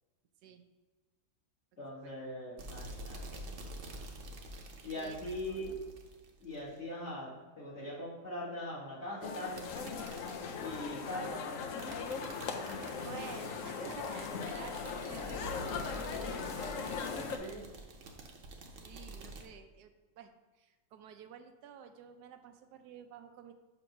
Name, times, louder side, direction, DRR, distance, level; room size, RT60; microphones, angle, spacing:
voice 1, 1.8-3.4 4.8-5.7 6.4-7.3 7.6-9.6 10.6-11.4 17.4-17.6, left 1 dB, 45° left, -9 dB, 2.7 m, -41 dB
sound 1, 2.6-6.8 9.5-19.4, right 2 dB, 55° right, 1.1 m, -48 dB
voice 2, 5.0-5.8 13.0-15.8 16.2-17.1 18.8-20.3 20.6-23.5, right 8 dB, 85° right, 7 dB, 1.2 m, -52 dB
sound 2, 9.2-17.4, left 5 dB, 65° left, 0.9 m, -39 dB
6.9 x 3.0 x 5.9 m, 1.3 s
omnidirectional pair, 1.7 m